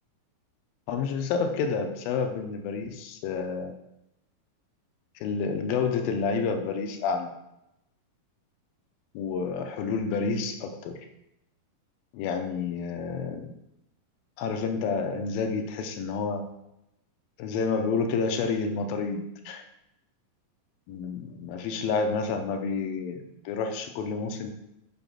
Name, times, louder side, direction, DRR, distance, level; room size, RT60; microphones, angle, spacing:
voice 1, 0.9-3.7 5.2-7.3 9.1-10.9 12.1-13.5 14.4-16.4 17.4-19.6 20.9-24.5, left 5 dB, 80° left, 6 dB, 2.4 m, -29 dB
6.0 x 5.3 x 5.8 m, 0.86 s
omnidirectional pair, 4.4 m